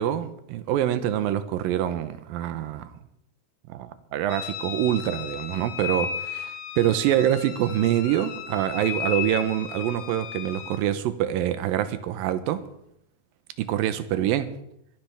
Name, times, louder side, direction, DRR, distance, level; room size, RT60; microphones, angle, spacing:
voice 1, 0.0-2.9 3.7-12.6 13.6-14.5, right 11 dB, 75° right, 2.4 m, -25 dB
sound 1, 4.3-10.8, left 8 dB, 70° left, 2.3 m, -35 dB
22.5 x 12.0 x 3.5 m
omnidirectional pair, 4.5 m